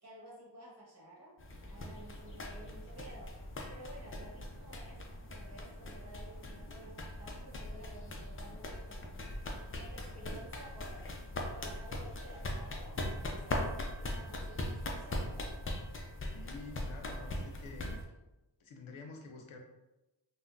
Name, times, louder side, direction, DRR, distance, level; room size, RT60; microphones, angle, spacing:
voice 1, 0.0-1.4 1.7-3.4 3.7-5.0 5.3-9.4 9.7-11.0 11.5-15.4, right 1 dB, 30° right, -5 dB, 1.3 m, -53 dB
sound 1, 1.4-18.0, left 1 dB, 30° left, 0.4 m, -40 dB
voice 2, 16.3-18.0 18.6-19.6, left 3 dB, 80° left, 2 dB, 0.6 m, -48 dB
3.4 x 2.1 x 2.5 m, 1.0 s
wide cardioid pair, 70°, 47 cm